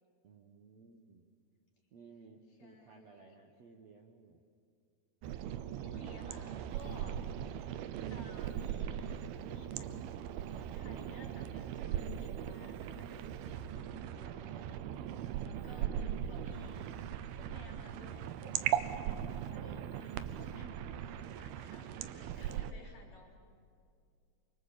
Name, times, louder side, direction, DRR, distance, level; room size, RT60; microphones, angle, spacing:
voice 1, 0.2-1.2 1.9-4.4 14.5-14.6 21.8-22.3, right 4 dB, 55° right, 2 dB, 2.0 m, -58 dB
voice 2, 2.5-3.4 5.5-7.7 8.1-9.2 9.5-10.2 10.7-17.0 17.4-23.4, left 2 dB, 45° left, -1 dB, 5.1 m, -56 dB
sound 1, 5.2-22.7, right 10 dB, 80° right, 2.7 m, -39 dB
29.0 x 26.0 x 7.3 m, 2.3 s
omnidirectional pair, 4.5 m